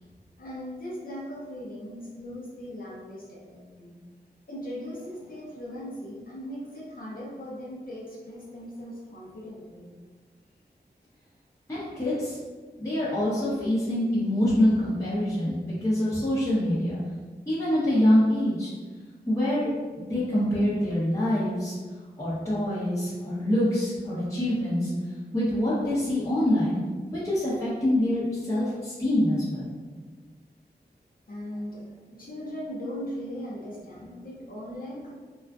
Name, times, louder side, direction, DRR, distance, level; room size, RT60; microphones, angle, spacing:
voice 1, 0.4-3.9 4.5-10.0 31.3-35.1, equal, 55° left, -6 dB, 0.6 m, -39 dB
voice 2, 11.7-12.4 12.8-17.0 17.5-18.7 19.3-19.7 20.0-21.7 22.2-24.9 25.3-26.8 27.1-29.7, left 1 dB, 20° left, -10 dB, 0.7 m, -25 dB
2.4 x 2.2 x 2.3 m, 1.4 s
cardioid pair, 45°, 18 cm